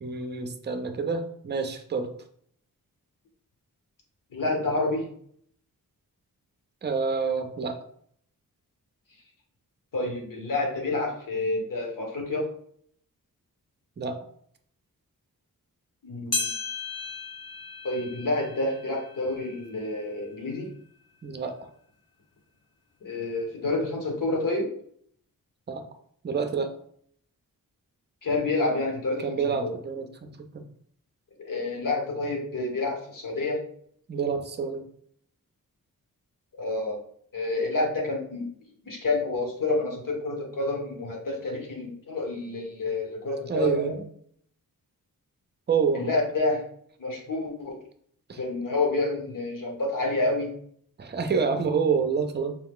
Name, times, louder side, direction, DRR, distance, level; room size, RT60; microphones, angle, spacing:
voice 1, 0.0-2.1 6.8-7.8 14.0-14.2 21.2-21.6 25.7-25.8 26.2-26.7 29.2-30.6 34.1-34.9 43.5-44.0 45.7-46.1 48.3-48.4 51.0-52.6, right 5 dB, 30° right, 7 dB, 0.6 m, -28 dB
voice 2, 4.3-5.1 9.9-12.5 16.0-16.6 17.8-20.7 23.0-24.7 28.2-29.7 31.4-33.6 36.6-37.0 37.3-38.5 38.8-44.0 45.9-46.6 47.0-47.8 48.4-50.5, left 2 dB, 65° left, 0 dB, 1.4 m, -28 dB
sound 1, 16.3-21.0 21.5-21.6 22.4-22.5 23.4-23.5, left 4 dB, 45° left, 0.9 m, -36 dB
4.7 x 2.3 x 3.6 m, 0.63 s
cardioid pair, 70°, 35 cm